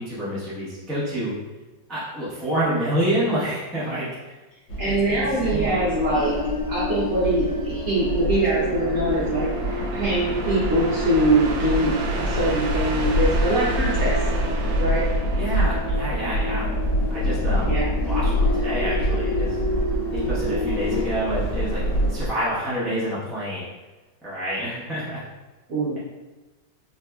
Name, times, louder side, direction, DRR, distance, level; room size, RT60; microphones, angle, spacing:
voice 1, 0.0-1.3 1.9-4.3 4.8-5.9 15.4-16.7 17.1-19.6 20.1-21.8 22.1-23.7 24.2-25.2, right 1 dB, ahead, -10 dB, 0.5 m, -28 dB
sound 1, 4.7-22.3, equal, 85° left, 1.5 m, -26 dB
voice 2, 4.8-6.3 6.7-9.5 9.9-14.1 14.8-15.0 17.6-17.9 25.7-26.0, right 1 dB, 55° right, -8 dB, 0.9 m, -23 dB
sound 2, 5.8-21.0, left 2 dB, 65° left, 1.6 m, -31 dB
sound 3, 8.0-16.5, right 2 dB, 85° right, 1.3 m, -33 dB
4.0 x 2.7 x 2.3 m, 1.2 s
omnidirectional pair, 2.0 m